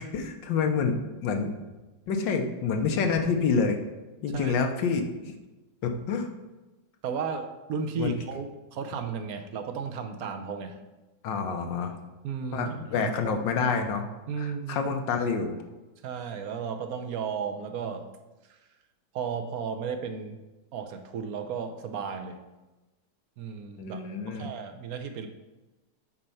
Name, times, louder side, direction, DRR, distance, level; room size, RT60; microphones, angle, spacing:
voice 1, 0.0-1.5 2.1-3.8 4.2-5.4 5.8-6.3 8.0-8.2 11.2-12.0 12.5-14.1 14.4-15.6 23.8-24.5, left 5 dB, 85° left, 5 dB, 1.6 m, -28 dB
voice 2, 7.0-10.8 12.2-13.4 14.3-14.8 16.0-18.1 18.5-18.6 19.1-20.4 20.7-22.4 23.4-25.3, right 6 dB, 65° right, 7 dB, 1.0 m, -34 dB
8.5 x 4.4 x 5.5 m, 1.1 s
omnidirectional pair, 1.9 m